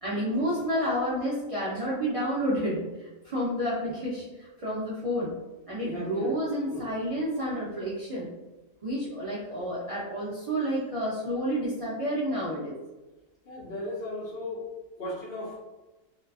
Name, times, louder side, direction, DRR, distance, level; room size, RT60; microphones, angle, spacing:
voice 1, 0.0-5.3 5.7-8.3 8.8-12.7, equal, 60° right, -7 dB, 0.3 m, -30 dB
voice 2, 5.8-6.3 6.7-6.9 13.4-14.6 15.0-15.6, left 1 dB, 55° left, -5 dB, 0.9 m, -36 dB
2.7 x 2.3 x 2.3 m, 1.1 s
omnidirectional pair, 1.4 m